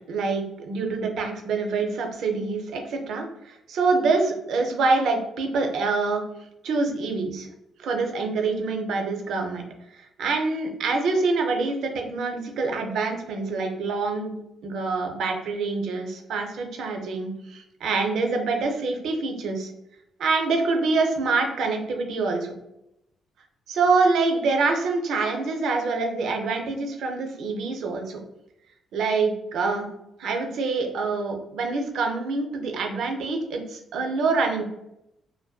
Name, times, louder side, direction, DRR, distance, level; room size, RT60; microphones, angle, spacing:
voice 1, 0.1-6.2 6.6-7.5 7.8-9.6 10.2-14.4 14.6-19.7 20.2-22.5 23.7-28.2 28.9-29.9 30.2-34.6, right 3 dB, 75° right, 3 dB, 0.4 m, -25 dB
2.6 x 2.1 x 2.3 m, 0.84 s
cardioid pair, 90°, 0 cm